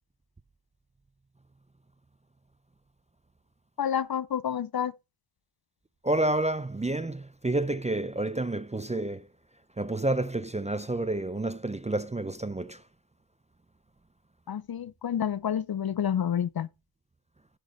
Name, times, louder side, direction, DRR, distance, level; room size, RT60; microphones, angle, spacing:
voice 1, 3.8-4.9 14.5-16.7, left 9 dB, 50° left, 0.6 m, -29 dB
voice 2, 6.0-9.2 9.8-12.8, right 2 dB, 15° right, 0.4 m, -29 dB
16.0 x 6.1 x 3.1 m
wide cardioid pair, 75°, 47 cm